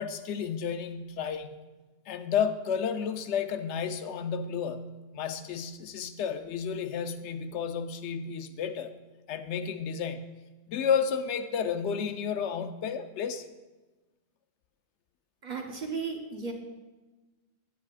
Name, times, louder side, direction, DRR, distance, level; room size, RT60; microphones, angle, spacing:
voice 1, 0.0-1.5 2.1-8.9 9.3-10.3 10.7-13.4, left 7 dB, 85° left, 9 dB, 0.9 m, -31 dB
voice 2, 15.4-16.5, right 5 dB, 45° right, 2 dB, 0.9 m, -35 dB
9.2 x 8.3 x 2.4 m, 1.2 s
omnidirectional pair, 1.1 m